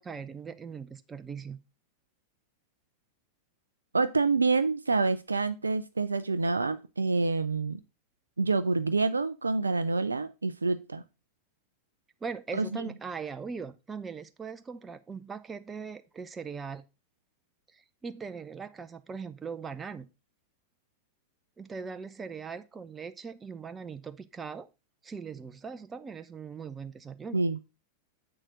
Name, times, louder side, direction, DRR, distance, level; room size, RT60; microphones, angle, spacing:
voice 1, 0.0-1.6 12.2-16.8 17.7-20.1 21.6-24.7 25.0-27.4, right 5 dB, 15° right, 0.6 m, -40 dB
voice 2, 3.9-7.8 8.4-11.0 12.5-12.8 27.3-27.6, right 3 dB, 75° right, 0.4 m, -27 dB
7.6 x 6.4 x 3.6 m
figure-of-eight pair, 90°, 0 cm